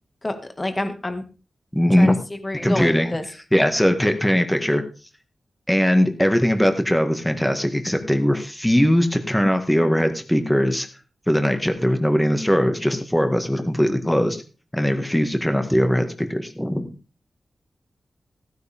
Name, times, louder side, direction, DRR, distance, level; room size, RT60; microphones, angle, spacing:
voice 1, 0.2-1.2 2.0-3.2, left 1 dB, 25° left, 7 dB, 1.8 m, -28 dB
voice 2, 1.7-2.2 2.5-3.2 3.5-4.8 5.7-10.9 11.3-14.4 14.7-16.9, equal, 5° left, 6 dB, 1.7 m, -20 dB
15.5 x 9.4 x 3.5 m, 0.34 s
cardioid pair, 75°, 0 cm